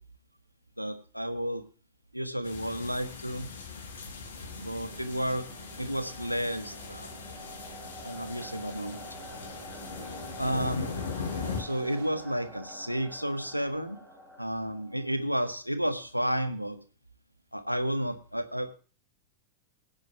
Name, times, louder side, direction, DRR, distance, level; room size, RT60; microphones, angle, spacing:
voice 1, 0.8-1.6 2.1-3.5 4.6-5.4 5.8-7.1 8.0-9.0 10.4-10.9 11.5-14.0 14.4-16.8 17.5-18.7, equal, 90° right, 10 dB, 1.5 m, -31 dB
sound 1, 2.4-11.6, left 5 dB, 65° left, 5.6 m, -40 dB
sound 2, 4.3-13.2, right 10 dB, 55° right, 1.5 m, -52 dB
sound 3, 4.5-15.4, left 1 dB, 5° left, 4.1 m, -48 dB
10.5 x 9.8 x 5.8 m, 0.35 s
figure-of-eight pair, 90°, 0 cm